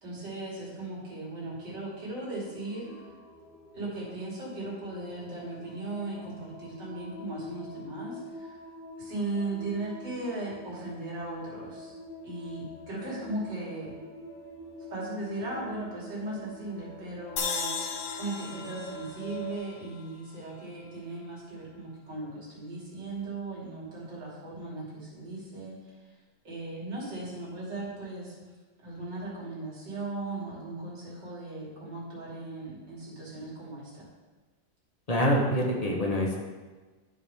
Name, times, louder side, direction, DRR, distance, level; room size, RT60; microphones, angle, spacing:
voice 1, 0.0-3.1 3.7-8.6 9.0-11.9 12.2-13.9 14.9-17.7 18.1-25.8 26.4-28.4 28.8-34.1, right 2 dB, 75° right, -6 dB, 3.1 m, -37 dB
sound 1, 1.6-19.6, left 1 dB, 55° left, 2.6 m, -46 dB
sound 2, 17.4-20.6, left 5 dB, 75° left, 1.5 m, -36 dB
voice 2, 35.1-36.4, equal, 25° left, -1 dB, 1.1 m, -25 dB
12.5 x 4.9 x 3.5 m, 1.3 s
omnidirectional pair, 1.9 m